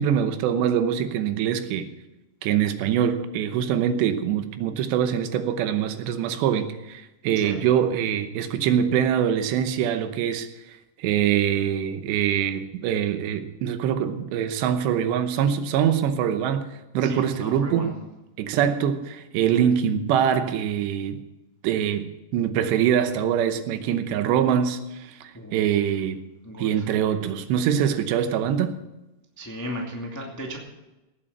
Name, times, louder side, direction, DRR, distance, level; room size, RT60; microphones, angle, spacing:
voice 1, 0.0-1.9 2.4-10.5 11.0-17.9 18.4-21.2 21.6-26.2 26.6-28.8, right 9 dB, 85° right, 3.1 m, -24 dB
voice 2, 17.0-17.9 18.6-18.7 25.3-25.8 26.4-26.9 29.4-30.6, equal, 20° left, 0.4 m, -35 dB
17.5 x 7.7 x 6.6 m
omnidirectional pair, 5.0 m